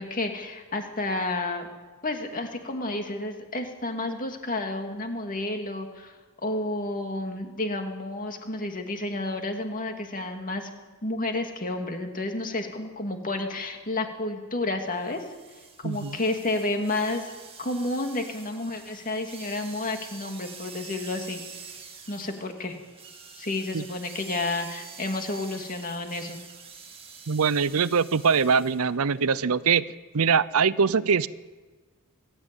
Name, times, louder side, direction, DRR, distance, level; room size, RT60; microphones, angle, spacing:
voice 1, 0.0-1.7 2.0-10.7 11.0-15.2 15.8-17.3 17.6-21.4 22.1-22.8 23.4-26.4, left 2 dB, 40° left, 4 dB, 2.4 m, -31 dB
sound 1, 15.0-28.9, right 5 dB, 25° right, 2.2 m, -46 dB
voice 2, 15.8-16.2 23.7-23.8 27.3-29.9 30.1-31.3, right 6 dB, 70° right, 18 dB, 0.6 m, -23 dB
22.0 x 13.0 x 9.1 m, 1.4 s
head